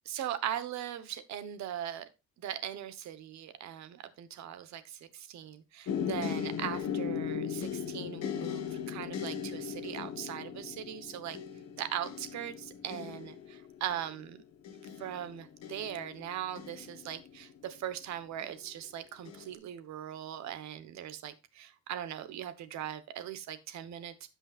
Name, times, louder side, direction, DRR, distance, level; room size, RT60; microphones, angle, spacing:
voice 1, 0.0-2.1 2.4-11.4 11.8-14.4 15.0-24.1, right 10 dB, 65° right, 12 dB, 1.2 m, -40 dB
sound 1, 5.9-17.7 18.4-18.9 19.3-19.5, left 7 dB, 60° left, 1.6 m, -38 dB
16.0 x 5.5 x 2.5 m, 0.28 s
cardioid pair, 165°, 31 cm